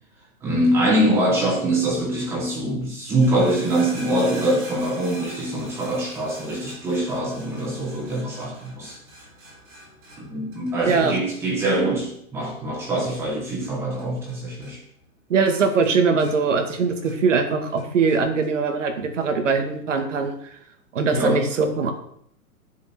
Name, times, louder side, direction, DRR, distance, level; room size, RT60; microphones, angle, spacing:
voice 1, 0.4-9.0 10.2-14.8 21.1-21.4, right 1 dB, 5° right, -3 dB, 1.5 m, -23 dB
sound 1, 3.0-14.4 14.6-15.2 15.5-17.4 17.8-18.5 19.2-19.3, right 1 dB, 25° right, 4.4 m, -44 dB
voice 2, 15.3-20.3 20.9-21.9, right 5 dB, 55° right, 5 dB, 2.3 m, -21 dB
17.5 x 7.2 x 4.6 m, 0.68 s
hypercardioid pair, 180°, 44 cm